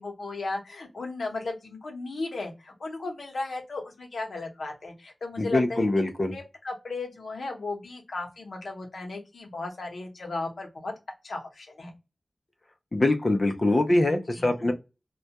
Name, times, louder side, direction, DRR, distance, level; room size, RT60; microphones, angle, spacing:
voice 1, 0.0-5.8 6.3-10.9 11.2-11.9 14.3-14.7, left 3 dB, 80° left, 2 dB, 0.8 m, -35 dB
voice 2, 5.4-6.3 12.9-14.7, left 2 dB, 40° left, 4 dB, 0.5 m, -23 dB
2.2 x 2.1 x 2.8 m, 0.26 s
wide cardioid pair, 80°, 0 cm